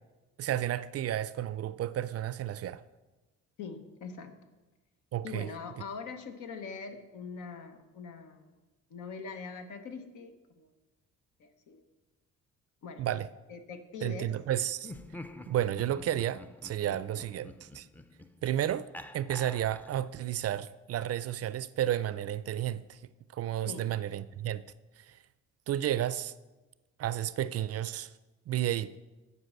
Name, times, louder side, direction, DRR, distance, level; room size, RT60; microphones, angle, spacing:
voice 1, 0.4-2.8 5.1-5.5 13.0-13.3 14.0-14.9 15.5-17.9 18.4-23.0 23.3-24.6 25.0-25.2 25.7-26.3 27.0-28.1 28.5-29.0, right 11 dB, 55° right, 0.4 m, -32 dB
voice 2, 3.6-4.4 5.2-8.5 8.9-10.7 11.4-11.8 12.8-13.1 13.5-14.4 17.1-17.3 23.6-23.9, left 5 dB, 80° left, 1.1 m, -43 dB
Laughter, 14.8-20.2, left 1 dB, 5° left, 0.4 m, -48 dB
8.1 x 5.4 x 7.7 m
cardioid pair, 90°, 30 cm